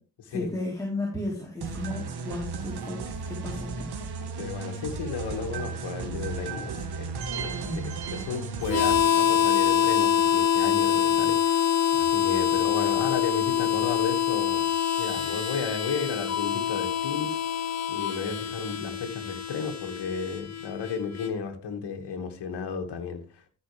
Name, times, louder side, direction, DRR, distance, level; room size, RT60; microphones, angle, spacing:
voice 1, 0.3-4.0 7.6-8.0, left 1 dB, 5° left, 4.3 m, -34 dB
sound 1, 1.6-9.0, right 4 dB, 60° right, 1.9 m, -34 dB
voice 2, 4.2-7.1 7.3-7.5 8.1-14.7 15.0-17.4 17.9-23.5, left 5 dB, 60° left, 2.5 m, -33 dB
Harmonica, 8.7-21.3, left 9 dB, 35° left, 1.6 m, -25 dB
14.5 x 6.2 x 3.5 m
supercardioid pair, 65°, 44 cm